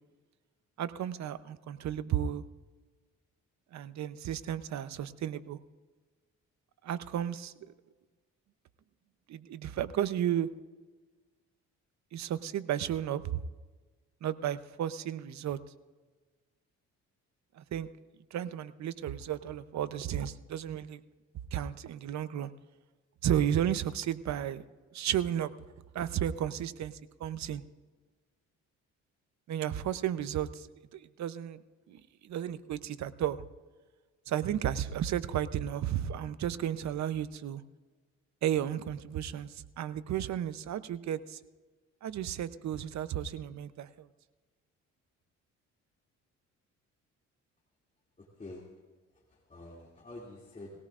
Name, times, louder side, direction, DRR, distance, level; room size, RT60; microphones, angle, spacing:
voice 1, 0.8-2.4 3.7-5.6 6.8-7.5 9.3-10.5 12.1-13.4 14.2-15.6 17.5-17.9 18.3-21.0 21.5-22.5 23.2-24.6 24.9-25.5 25.9-27.6 29.5-31.6 31.9-33.4 34.3-37.6 38.4-41.4 42.0-44.1, right 10 dB, 65° right, 14 dB, 0.8 m, -33 dB
voice 2, 48.2-48.6 49.3-50.8, left 2 dB, 25° left, -3 dB, 2.7 m, -47 dB
20.5 x 17.0 x 2.5 m, 1.3 s
cardioid pair, 90°, 30 cm